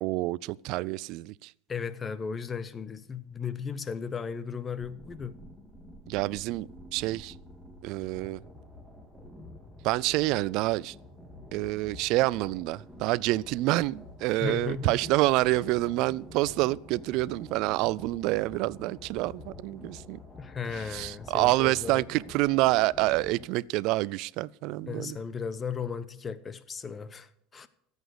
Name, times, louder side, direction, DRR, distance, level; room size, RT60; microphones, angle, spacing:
voice 1, 0.0-1.5 6.1-7.3 7.8-8.4 9.8-11.0 11.5-20.2 20.7-25.2, right 19 dB, 65° right, 0.4 m, -27 dB
voice 2, 1.7-5.4 14.4-15.0 20.4-22.0 24.9-27.7, left 6 dB, 30° left, 1.0 m, -35 dB
sound 1, 4.8-23.5, left 1 dB, 5° left, 3.3 m, -48 dB
13.5 x 8.2 x 6.5 m
hypercardioid pair, 85°, 0 cm